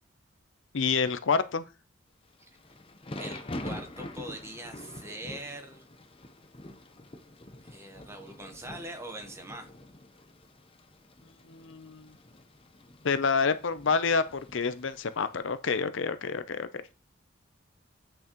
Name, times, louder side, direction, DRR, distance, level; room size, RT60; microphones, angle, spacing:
voice 1, 0.7-1.6 11.5-12.1 13.0-16.7, left 5 dB, 65° left, 12 dB, 0.6 m, -28 dB
Thunder / Rain, 2.3-15.4, left 1 dB, 25° left, 0.7 m, -45 dB
voice 2, 3.2-5.8 7.6-9.7, right 1 dB, 15° right, 5 dB, 1.1 m, -42 dB
8.8 x 6.2 x 3.0 m, 0.32 s
head